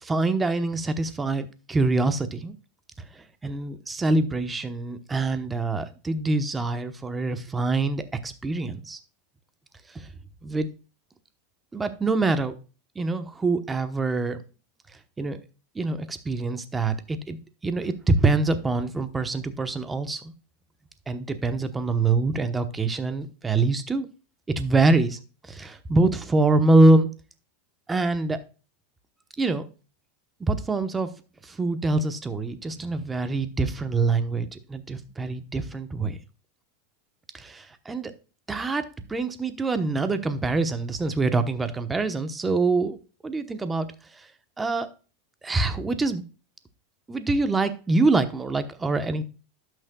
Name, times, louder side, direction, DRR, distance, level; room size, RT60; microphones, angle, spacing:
voice 1, 0.0-2.5 3.0-9.0 9.9-10.1 10.4-10.7 11.7-12.5 12.9-14.4 15.2-15.4 15.7-20.3 21.1-24.1 24.6-25.2 25.5-27.1 27.9-28.4 29.4-29.7 30.4-31.1 31.4-36.2 37.3-38.1 38.5-43.0 43.2-43.9 44.1-44.3 44.6-44.9 45.4-46.2 47.1-49.2, right 3 dB, 15° right, 1.0 m, -25 dB
12.0 x 6.3 x 2.3 m
supercardioid pair, 135°, 0 cm